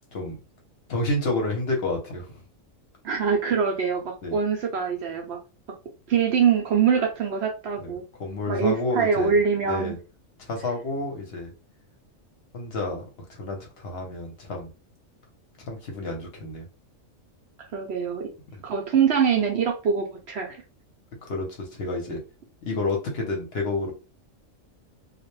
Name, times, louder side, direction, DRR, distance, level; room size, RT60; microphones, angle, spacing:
voice 1, 0.9-2.4 4.2-4.4 7.8-7.9 8.2-9.4 9.6-10.0 10.4-11.5 12.5-13.1 13.4-14.7 15.7-16.7 21.2-22.2 22.6-23.9, left 2 dB, 60° left, 1 dB, 0.8 m, -29 dB
voice 2, 3.0-5.4 6.1-8.0 8.5-9.9 17.6-18.3 18.6-20.6, right 6 dB, 65° right, 2 dB, 0.7 m, -24 dB
2.3 x 2.0 x 3.0 m, 0.32 s
omnidirectional pair, 1.4 m